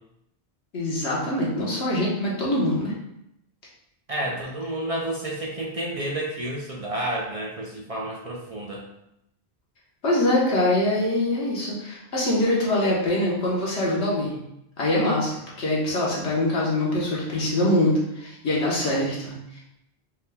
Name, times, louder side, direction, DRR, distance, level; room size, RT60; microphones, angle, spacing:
voice 1, 0.7-2.9 10.0-14.4 14.8-19.6, left 1 dB, 90° left, -5 dB, 1.4 m, -24 dB
voice 2, 4.1-8.8, right 1 dB, 45° right, -3 dB, 0.5 m, -30 dB
4.6 x 3.5 x 2.2 m, 0.80 s
omnidirectional pair, 1.1 m